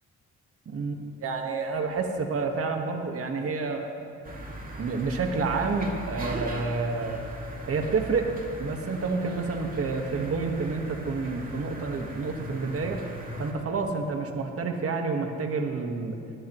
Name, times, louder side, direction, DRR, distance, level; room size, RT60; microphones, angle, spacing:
voice 1, 0.6-3.9 4.8-7.2 7.6-8.3 8.6-13.0 13.4-16.2, right 4 dB, 50° right, 3 dB, 1.6 m, -29 dB
sound 1, 4.2-13.5, right 1 dB, 30° right, 2.6 m, -39 dB
20.5 x 20.0 x 3.2 m, 2.5 s
cardioid pair, 90°, 30 cm